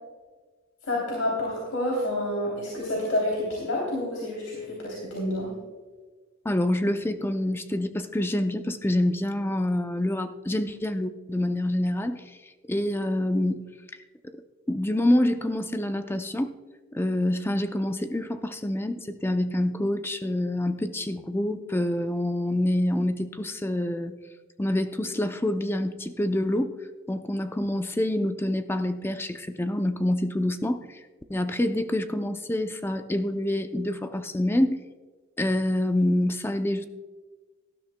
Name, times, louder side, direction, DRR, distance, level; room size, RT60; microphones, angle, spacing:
voice 1, 0.9-5.5, left 1 dB, 85° left, -3 dB, 3.1 m, -28 dB
voice 2, 6.4-12.2 12.7-13.6 14.7-16.5 16.9-24.1 24.6-26.8 27.1-31.0 31.3-34.8 35.4-36.9, left 1 dB, 10° left, 8 dB, 0.5 m, -26 dB
18.0 x 12.5 x 2.2 m, 1.4 s
head